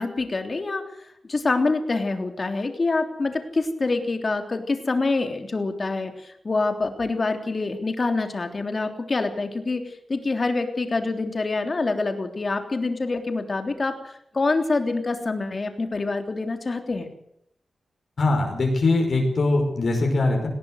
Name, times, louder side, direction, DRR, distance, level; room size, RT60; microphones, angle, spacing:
voice 1, 0.0-17.1, left 3 dB, 40° left, 6 dB, 3.3 m, -26 dB
voice 2, 18.2-20.5, left 2 dB, 60° left, 1 dB, 5.4 m, -21 dB
19.5 x 17.5 x 8.1 m, 0.72 s
wide cardioid pair, 95°, 0 cm